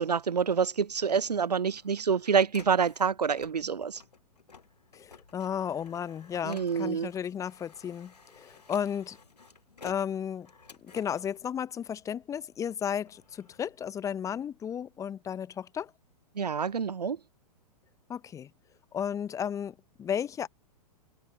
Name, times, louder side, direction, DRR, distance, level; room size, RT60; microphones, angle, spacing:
voice 1, 0.0-4.0 6.4-7.1 16.4-17.2, right 6 dB, 80° right, 0.7 m, -27 dB
Printer, 0.9-12.3 12.8-14.6, left 5 dB, 80° left, 2.1 m, -55 dB
voice 2, 4.9-9.2 9.8-10.5 10.8-15.9 18.1-18.5 18.9-20.5, left 8 dB, 15° left, 0.8 m, -34 dB
open air
figure-of-eight pair, 110°, 20 cm